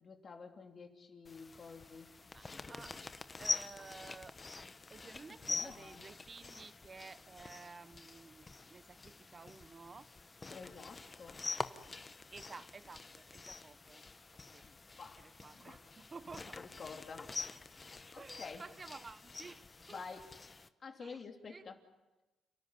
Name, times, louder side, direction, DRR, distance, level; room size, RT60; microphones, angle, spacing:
voice 1, 0.0-2.1 5.3-6.1 10.5-11.5 14.0-14.1 14.6-15.2 15.5-15.8 16.5-18.6 19.9-20.3 20.8-21.8, left 5 dB, 45° left, 3.2 m, -50 dB
sound 1, 1.2-20.7, left 3 dB, 25° left, 1.0 m, -46 dB
voice 2, 2.3-3.0 3.4-4.3 4.9-10.1 12.3-14.0 14.5-14.7 15.2-16.6 18.2-19.6 19.9-20.0 21.0-21.2 21.5-21.6, right 4 dB, 30° right, 0.8 m, -53 dB
29.5 x 13.5 x 9.8 m
cardioid pair, 90°, 0 cm